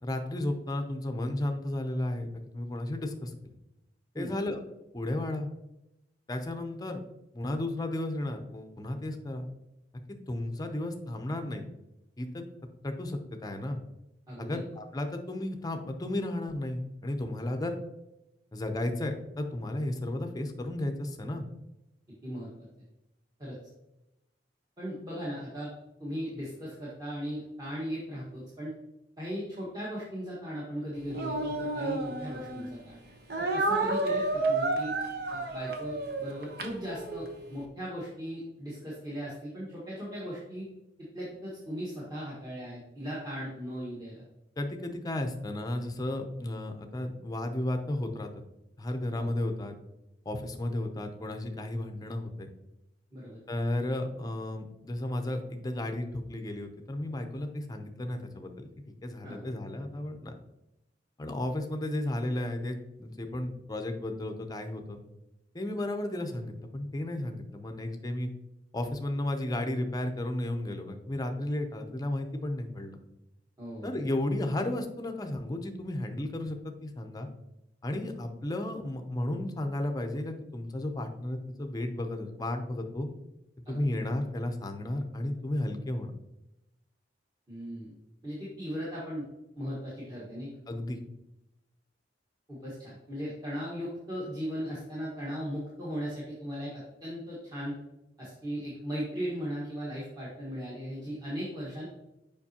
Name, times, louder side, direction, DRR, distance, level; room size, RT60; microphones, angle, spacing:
voice 1, 0.0-3.3 4.1-4.6 4.9-5.5 6.3-7.0 7.3-9.5 10.3-11.6 12.2-12.4 12.8-13.8 14.4-17.7 18.5-21.5 44.6-48.3 48.8-49.8 50.3-52.5 53.5-58.7 59.0-60.3 61.2-65.0 65.5-68.3 68.7-73.0 73.8-77.3 77.8-83.1 83.7-86.1 90.7-91.0, left 1 dB, 20° left, 5 dB, 0.6 m, -33 dB
voice 2, 14.3-14.6 22.2-22.7 23.4-23.5 24.8-25.7 26.0-28.7 29.2-33.0 33.4-34.9 35.3-40.7 41.1-44.2 49.1-49.3 53.1-53.4 59.2-59.4 73.6-73.9 83.7-83.8 87.5-87.9 88.2-89.2 89.6-90.5 92.5-97.7 98.2-101.9, equal, 20° right, -7 dB, 1.4 m, -37 dB
Speech, 31.1-32.7 33.3-37.3, right 2 dB, 60° right, 0.9 m, -31 dB
7.0 x 5.1 x 2.8 m, 0.90 s
head